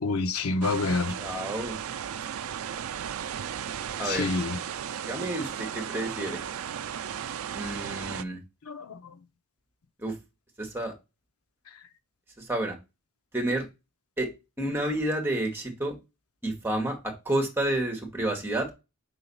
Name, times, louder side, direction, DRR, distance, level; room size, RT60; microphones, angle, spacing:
voice 1, 0.0-1.2 4.1-4.6 8.7-9.2, left 3 dB, 80° left, 0.7 m, -28 dB
sound 1, 0.6-8.2, right 8 dB, 70° right, 0.4 m, -35 dB
voice 2, 1.2-1.7 4.0-4.3 5.0-6.4 7.5-8.4 10.0-10.1 10.6-10.9 12.4-12.7 13.3-13.6 14.2-14.3 14.6-16.0 16.4-18.7, right 1 dB, 10° right, 1.6 m, -30 dB
5.4 x 3.9 x 5.4 m
head